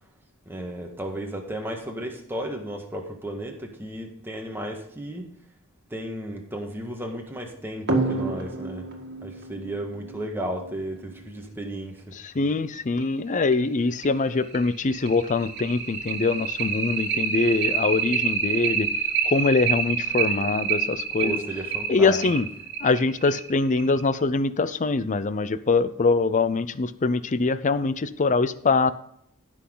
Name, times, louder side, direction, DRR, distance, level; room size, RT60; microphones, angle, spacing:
voice 1, 0.4-5.3 5.9-8.9 9.2-12.2 21.2-22.2, right 1 dB, 10° right, 1 dB, 1.7 m, -34 dB
sound 1, 7.9-11.0 12.5-12.6 13.0-13.1 13.5-13.6 14.0-24.1, right 5 dB, 55° right, 1.9 m, -28 dB
voice 2, 12.2-18.9 19.2-21.4 21.9-22.5 22.8-28.9, left 3 dB, 35° left, 15 dB, 0.5 m, -23 dB
15.5 x 6.2 x 3.8 m, 0.73 s
head